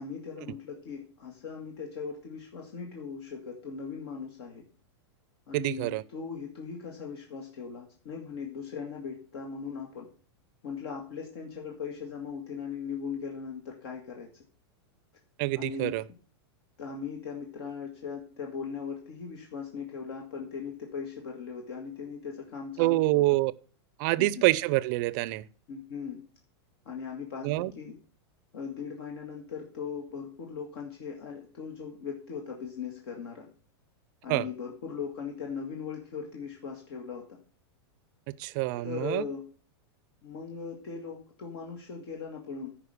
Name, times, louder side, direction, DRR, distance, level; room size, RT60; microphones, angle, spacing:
voice 1, 0.0-4.6 5.5-10.1 10.6-14.3 15.6-16.0 16.8-23.4 24.2-24.5 25.7-26.2 26.9-28.0 28.5-33.5 34.2-37.4 38.8-39.4 40.2-42.7, left 6 dB, 65° left, 1.9 m, -39 dB
voice 2, 5.5-6.0 15.4-16.0 22.8-23.5 24.0-25.5 27.4-27.7 34.3-34.5 38.4-39.2, right 19 dB, 45° right, 0.5 m, -26 dB
9.9 x 5.1 x 6.6 m
supercardioid pair, 140°, 14 cm